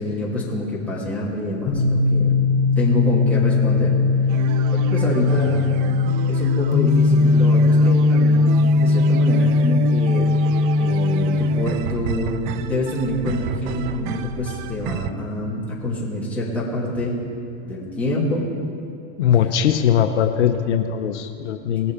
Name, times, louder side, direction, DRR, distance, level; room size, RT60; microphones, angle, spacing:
voice 1, 0.0-2.5 2.8-4.0 4.7-5.7 6.3-10.3 10.8-17.2 17.7-18.5 21.4-21.8, left 1 dB, 5° left, -7 dB, 2.7 m, -26 dB
sound 1, 1.7-15.3, left 3 dB, 20° left, 1.6 m, -20 dB
sound 2, 4.3-15.1, right 10 dB, 35° right, 0.5 m, -32 dB
voice 2, 19.2-21.9, left 9 dB, 85° left, 7 dB, 0.9 m, -20 dB
19.5 x 7.0 x 5.0 m, 2.7 s
supercardioid pair, 135°, 34 cm